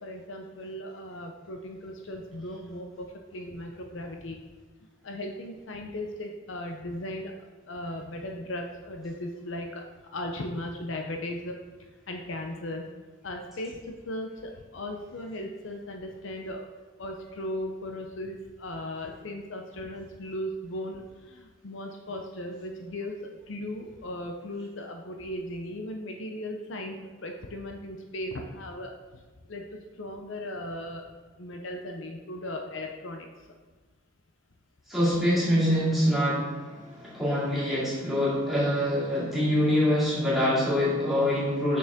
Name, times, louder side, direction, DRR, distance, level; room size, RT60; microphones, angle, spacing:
voice 1, 0.0-3.1 3.3-4.4 5.0-7.3 7.7-9.8 10.1-11.6 12.1-12.9 13.2-16.7 17.0-23.2 23.5-27.0 27.2-28.9 29.5-31.1 31.4-33.3, left 1 dB, 65° left, 3 dB, 0.7 m, -37 dB
voice 2, 34.9-41.8, equal, ahead, -10 dB, 2.4 m, -25 dB
6.9 x 6.2 x 3.6 m, 1.3 s
head